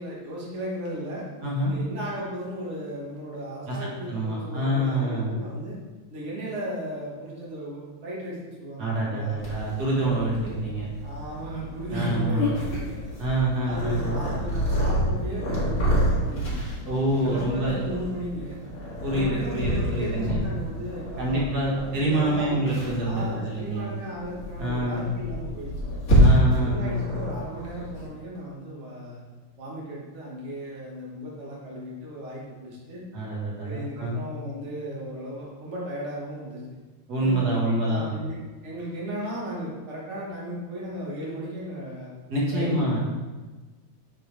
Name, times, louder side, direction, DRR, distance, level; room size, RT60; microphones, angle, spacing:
voice 1, 0.0-1.3 1.7-5.8 6.1-9.4 11.0-13.0 13.6-16.6 17.2-18.6 19.1-22.6 23.0-26.0 26.6-29.2 29.6-33.0 33.6-36.6 37.2-38.4 38.6-42.1 42.5-42.8, equal, 65° right, -5 dB, 0.7 m, -36 dB
voice 2, 1.4-1.7 3.7-3.8 4.1-5.4 8.8-10.9 11.9-12.5 13.2-14.2 16.8-17.8 19.0-20.4 21.2-23.9 24.6-25.1 26.2-27.0 33.1-34.2 37.1-38.1 42.3-43.0, right 1 dB, 45° right, -5 dB, 1.5 m, -26 dB
Purr, 9.4-28.1, equal, 35° left, 1.8 m, -28 dB
8.7 x 4.5 x 3.4 m, 1.3 s
omnidirectional pair, 3.5 m